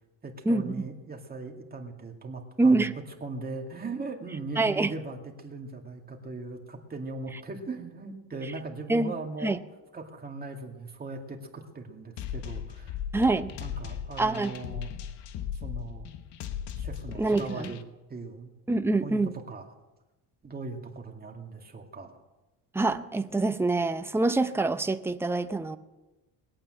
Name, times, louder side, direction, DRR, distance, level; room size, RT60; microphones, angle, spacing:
voice 1, 0.2-2.9 3.2-9.6 9.9-13.0 13.5-14.9 15.6-16.1 16.8-17.8 18.1-18.5 19.0-19.7 20.4-22.2, right 3 dB, 20° right, 2 dB, 2.3 m, -39 dB
voice 2, 2.6-2.9 4.6-4.9 8.9-9.1 9.4-9.6 13.1-13.5 14.2-14.5 17.2-17.7 18.7-19.3 22.7-25.8, right 2 dB, 5° right, 9 dB, 0.6 m, -25 dB
sound 1, 12.2-17.8, left 9 dB, 75° left, 1.2 m, -37 dB
20.5 x 8.8 x 7.8 m, 1.1 s
cardioid pair, 130°, 42 cm